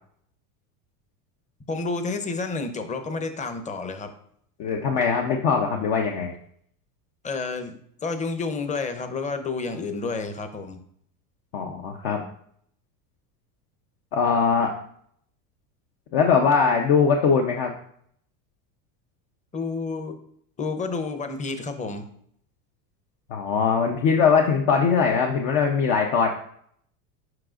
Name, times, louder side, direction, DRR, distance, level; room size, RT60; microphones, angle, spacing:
voice 1, 1.7-4.1 7.2-10.8 19.5-20.2 20.6-22.0, left 4 dB, 15° left, 8 dB, 0.7 m, -30 dB
voice 2, 4.6-6.3 11.5-12.2 14.1-14.7 16.1-17.7 23.3-26.3, left 5 dB, 55° left, 2 dB, 0.8 m, -21 dB
7.6 x 5.0 x 2.5 m, 0.66 s
supercardioid pair, 100°, 48 cm